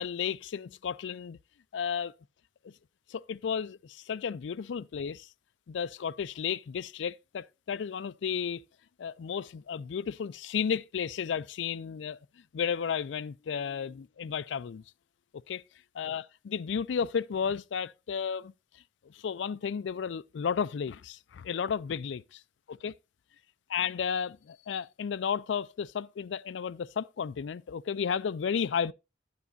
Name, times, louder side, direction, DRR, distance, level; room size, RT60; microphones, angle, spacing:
voice 1, 0.0-1.4 1.7-2.1 3.1-5.3 5.7-8.6 9.0-12.2 12.5-14.8 15.5-15.6 16.0-18.5 19.1-22.4 22.7-23.0 23.7-28.9, left 7 dB, 90° left, 0.4 m, -33 dB
11.0 x 9.4 x 2.6 m
head